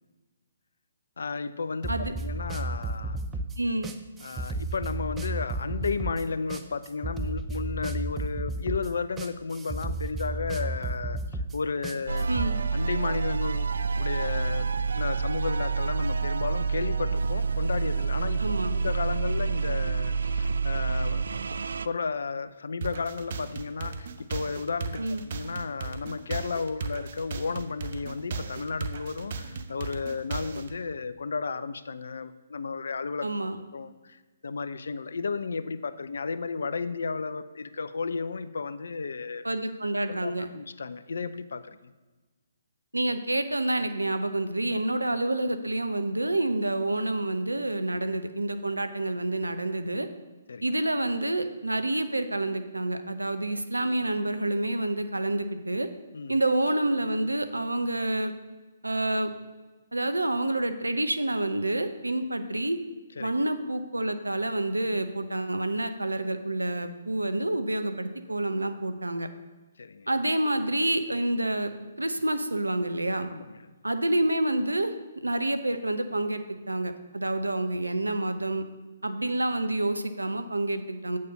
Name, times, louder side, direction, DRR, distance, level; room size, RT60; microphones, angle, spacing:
voice 1, 1.2-3.2 4.2-12.3 12.7-13.7 14.0-21.3 21.8-25.0 25.3-39.5 40.1-41.9 50.5-50.7 56.1-56.4 63.2-63.3 69.8-70.1 73.3-73.7, left 4 dB, 65° left, 13 dB, 0.6 m, -33 dB
sound 1, 1.8-12.5, right 2 dB, 10° right, 0.6 m, -33 dB
voice 2, 3.6-3.9 12.3-12.6 18.4-18.8 25.0-25.2 33.2-33.6 39.4-40.5 42.9-50.1 50.6-55.9 56.3-58.3 58.8-59.3 59.9-62.8 63.2-69.3 70.1-71.7 72.0-73.3 73.8-78.6 79.0-81.2, right 1 dB, 90° right, 9 dB, 0.8 m, -28 dB
sound 2, 12.1-21.9, right 5 dB, 70° right, 0.3 m, -28 dB
sound 3, 22.8-30.8, right 4 dB, 50° right, 0.7 m, -36 dB
8.3 x 6.6 x 5.4 m, 1.2 s
figure-of-eight pair, 135°, 0 cm